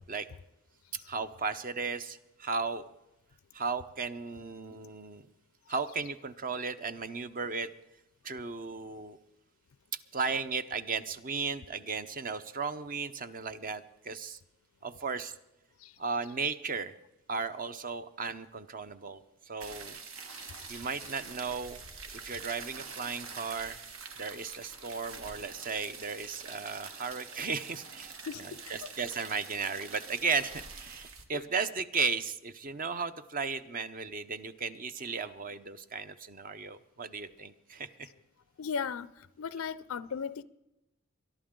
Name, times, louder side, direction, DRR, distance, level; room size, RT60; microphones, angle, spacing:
voice 1, 0.9-2.8 3.5-5.3 5.7-7.7 8.2-9.2 10.1-14.4 14.8-15.4 16.0-16.9 17.3-20.0 20.7-21.9 22.1-23.8 24.2-38.1, right 5 dB, 40° right, 0.7 m, -35 dB
sound 1, 19.6-31.2, right 5 dB, 75° right, 1.5 m, -45 dB
voice 2, 20.3-20.7 28.2-28.6 31.3-31.4 38.6-40.4, left 6 dB, 85° left, 0.5 m, -38 dB
22.0 x 12.0 x 3.8 m
head